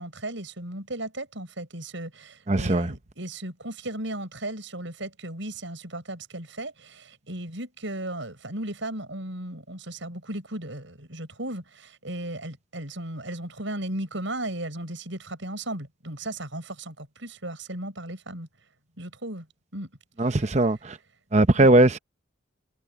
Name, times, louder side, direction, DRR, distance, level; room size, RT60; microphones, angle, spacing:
voice 1, 0.0-18.5 19.0-19.5 19.7-19.9 20.2-20.6 21.5-21.7, right 1 dB, 65° right, 6.8 m, -36 dB
voice 2, 2.5-2.9 20.2-21.0 21.3-22.0, right 2 dB, 35° right, 0.8 m, -19 dB
head